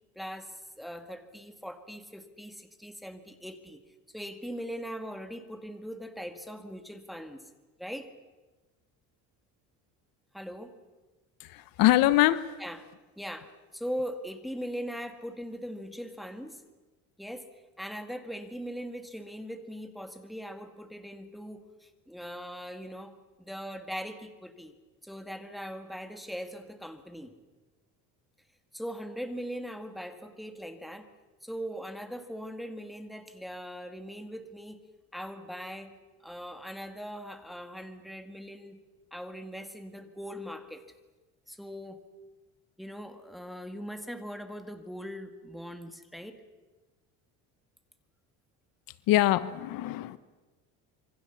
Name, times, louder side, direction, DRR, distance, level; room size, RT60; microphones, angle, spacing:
voice 1, 0.2-3.8 4.1-7.5 7.8-8.1 10.3-10.7 12.6-12.9 13.2-16.6 17.2-17.5 17.8-24.7 25.0-27.4 28.7-31.1 31.4-34.8 35.1-36.0 36.2-38.8 39.1-40.8 41.5-42.0 42.8-46.4, equal, ahead, 7 dB, 1.9 m, -40 dB
voice 2, 11.4-12.5 49.1-50.2, left 15 dB, 65° left, 15 dB, 1.1 m, -23 dB
26.5 x 24.0 x 7.1 m, 1.2 s
cardioid pair, 140°, 37 cm